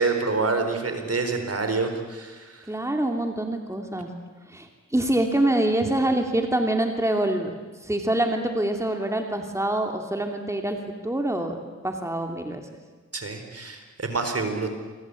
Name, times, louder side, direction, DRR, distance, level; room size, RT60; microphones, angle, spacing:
voice 1, 0.0-2.7 13.1-14.7, right 4 dB, 55° right, 6 dB, 4.4 m, -27 dB
voice 2, 2.7-4.1 4.5-7.5 7.8-10.8 11.0-12.6, right 1 dB, 10° right, 4 dB, 2.7 m, -25 dB
27.5 x 23.0 x 8.5 m, 1.4 s
wide cardioid pair, 75°, 29 cm